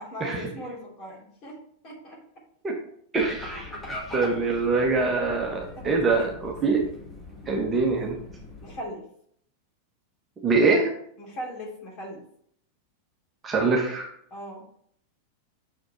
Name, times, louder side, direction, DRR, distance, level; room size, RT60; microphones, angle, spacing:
voice 1, 0.0-1.6 1.8-2.2 5.7-6.4 8.6-9.0 11.2-12.2 14.3-14.6, equal, 35° left, -2 dB, 3.0 m, -38 dB
voice 2, 3.1-3.7 4.1-6.8 7.5-8.2 10.4-10.9 13.4-14.1, right 3 dB, 20° right, -1 dB, 1.3 m, -24 dB
sound 1, 3.2-8.8, left 1 dB, 10° left, 1.6 m, -41 dB
6.5 x 4.9 x 4.4 m, 0.65 s
figure-of-eight pair, 90°, 0 cm